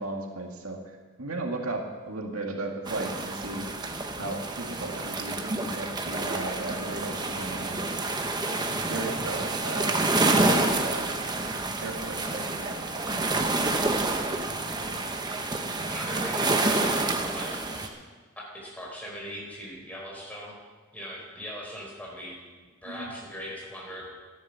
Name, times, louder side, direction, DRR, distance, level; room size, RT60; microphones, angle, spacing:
voice 1, 0.0-3.7 4.2-7.9 8.7-10.0 10.3-11.1 11.8-13.9 14.5-15.0 22.8-23.1, right 2 dB, 80° right, 1 dB, 2.0 m, -36 dB
sound 1, 2.9-17.9, right 2 dB, 20° right, 1.1 m, -28 dB
voice 2, 15.9-17.9 18.4-20.5 20.9-22.3 22.8-24.1, equal, 5° left, -3 dB, 4.5 m, -40 dB
14.0 x 11.0 x 7.0 m, 1.4 s
head